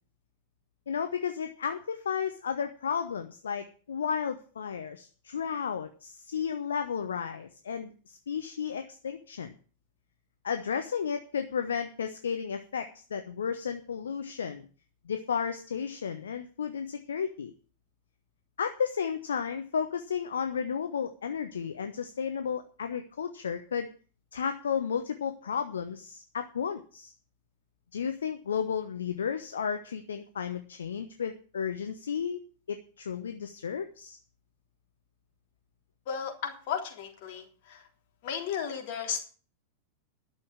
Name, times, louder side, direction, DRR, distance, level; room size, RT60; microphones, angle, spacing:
voice 1, 0.9-9.5 10.4-14.7 15.1-17.5 18.6-23.9 24.3-27.1 27.9-32.4 32.7-34.2, left 7 dB, 70° left, 8 dB, 1.0 m, -33 dB
voice 2, 36.1-37.8 38.2-39.2, left 7 dB, 50° left, 2 dB, 3.3 m, -34 dB
11.5 x 7.0 x 8.7 m, 0.40 s
figure-of-eight pair, 90°, 0 cm